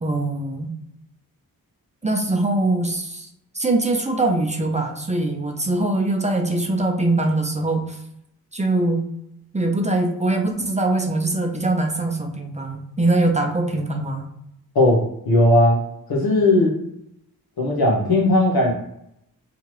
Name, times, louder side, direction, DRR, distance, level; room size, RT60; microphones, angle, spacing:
voice 1, 0.0-0.7 2.0-3.3 3.5-8.0 8.5-9.1 9.5-14.3, right 2 dB, 20° right, 2 dB, 0.5 m, -22 dB
voice 2, 14.7-15.8 16.1-16.7 17.6-18.7, left 1 dB, 75° left, -1 dB, 1.0 m, -17 dB
2.8 x 2.4 x 3.0 m, 0.78 s
cardioid pair, 55°, 38 cm